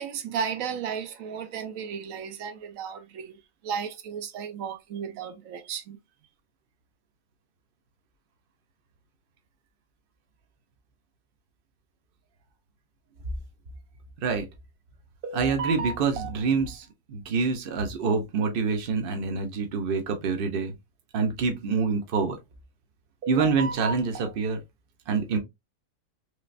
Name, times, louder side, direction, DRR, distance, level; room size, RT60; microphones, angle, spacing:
voice 1, 0.0-6.0, right 7 dB, 75° right, 1.1 m, -34 dB
voice 2, 15.2-20.7 21.1-22.4 23.2-24.6 25.1-25.4, right 5 dB, 50° right, 0.8 m, -26 dB
3.2 x 3.0 x 2.4 m
omnidirectional pair, 1.4 m